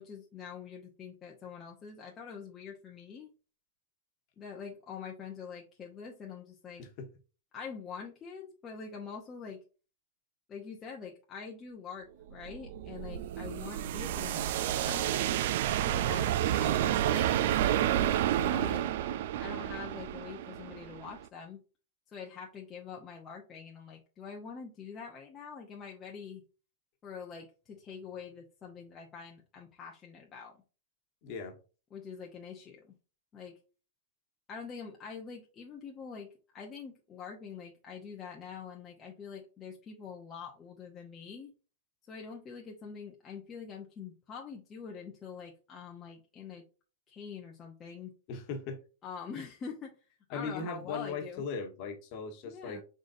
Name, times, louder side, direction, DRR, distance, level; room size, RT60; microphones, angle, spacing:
voice 1, 0.0-3.3 4.4-6.8 7.5-9.6 10.5-14.5 14.7-15.3 15.8-17.4 18.4-18.8 19.4-21.6 22.1-26.4 27.0-30.5 31.9-32.9 33.3-33.5 34.5-41.5 42.1-46.6 47.1-48.1 49.0-49.9 50.3-51.4 52.4-52.8, left 6 dB, 25° left, -1 dB, 0.8 m, -45 dB
sound 1, 12.3-21.2, right 11 dB, 60° right, 0.3 m, -30 dB
voice 2, 31.2-31.5 48.3-48.8 50.3-52.8, left 4 dB, 45° left, 4 dB, 1.3 m, -38 dB
5.0 x 3.9 x 2.6 m, 0.34 s
hypercardioid pair, 140°, 0 cm